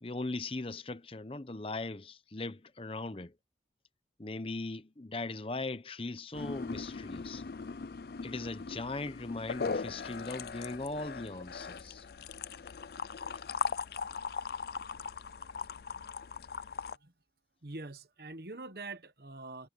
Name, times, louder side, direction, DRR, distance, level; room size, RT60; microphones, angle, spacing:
voice 1, 0.0-3.3 4.2-7.4 8.2-12.0, left 2 dB, 30° left, 0.8 m, -39 dB
sound 1, 6.3-17.0, left 5 dB, 60° left, 0.5 m, -39 dB
voice 2, 17.6-19.7, right 3 dB, 60° right, 1.3 m, -44 dB
head